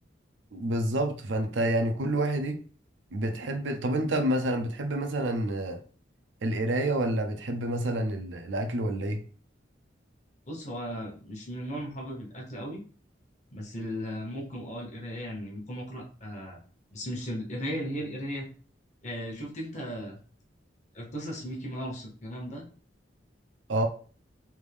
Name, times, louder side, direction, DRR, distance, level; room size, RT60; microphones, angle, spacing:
voice 1, 0.5-2.6 3.1-5.8 6.4-9.2 23.7-23.9, right 1 dB, 80° right, 0.6 m, -28 dB
voice 2, 10.5-12.8 13.5-16.6 16.9-18.5 19.0-20.2 20.9-22.6, equal, 40° left, 0.9 m, -36 dB
3.5 x 2.6 x 3.3 m
head